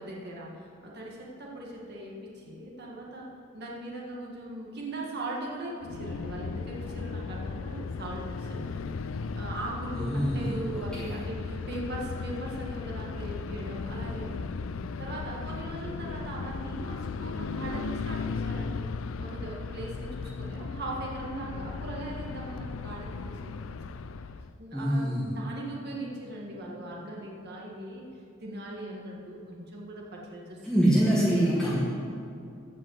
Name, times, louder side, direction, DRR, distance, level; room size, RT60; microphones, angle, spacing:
voice 1, 0.0-3.3 3.5-14.7 15.0-18.9 19.2-24.1 24.6-28.0 28.4-31.6, right 1 dB, 50° right, -3 dB, 1.9 m, -40 dB
sound 1, 5.8-24.6, left 4 dB, 80° left, 0.5 m, -36 dB
voice 2, 9.9-10.5 10.9-11.2 24.7-25.4 30.6-31.8, equal, 5° left, -9 dB, 1.8 m, -25 dB
15.5 x 5.6 x 8.1 m, 2.6 s
head